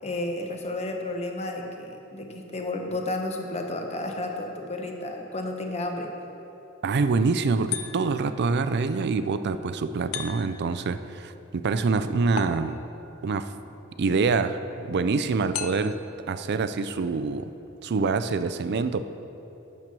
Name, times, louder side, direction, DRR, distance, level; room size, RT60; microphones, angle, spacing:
voice 1, 0.0-6.1, left 2 dB, 30° left, 3 dB, 1.0 m, -32 dB
voice 2, 6.8-12.8 13.2-13.5 14.0-16.0 16.3-17.5 17.8-19.1, right 4 dB, 55° right, 12 dB, 0.4 m, -25 dB
sound 1, 7.7-8.3 10.1-10.8 12.4-13.1 15.5-16.1, left 8 dB, 75° left, 0.6 m, -35 dB
8.9 x 7.5 x 6.0 m, 3.0 s
head